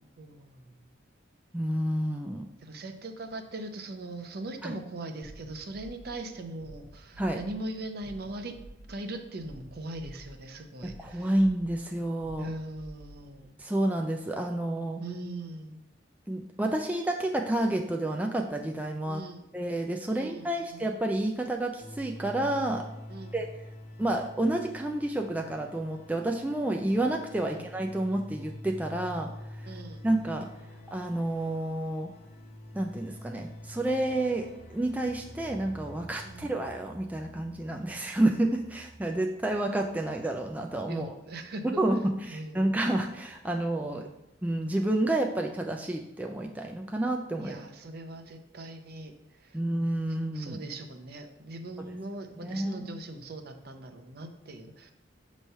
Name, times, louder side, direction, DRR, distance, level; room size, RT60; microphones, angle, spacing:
voice 1, 0.2-0.8 2.6-8.6 8.9-11.4 12.4-13.6 15.0-15.8 19.1-19.4 20.1-20.9 23.1-23.4 27.4-27.7 29.6-30.1 36.2-36.5 40.9-41.8 42.3-42.7 43.9-44.2 47.4-49.6 50.1-54.9, right 2 dB, 55° right, 6 dB, 0.6 m, -40 dB
voice 2, 1.5-2.5 4.6-4.7 7.2-7.4 10.8-12.5 13.6-15.0 16.3-19.2 19.5-22.8 23.3-23.5 24.0-29.7 30.0-30.5 30.9-32.1 32.7-41.1 41.6-42.0 42.3-44.0 44.4-47.6 49.5-50.6 52.4-52.8, right 1 dB, 10° right, 2 dB, 0.3 m, -29 dB
sound 1, 5.2-13.5, right 1 dB, 90° left, 1.0 m, -50 dB
sound 2, 21.8-37.7, left 1 dB, 35° left, 0.8 m, -47 dB
sound 3, 33.7-44.1 44.4-44.5 44.9-45.0, right 2 dB, 65° left, 0.8 m, -55 dB
6.6 x 3.1 x 5.4 m, 0.88 s
head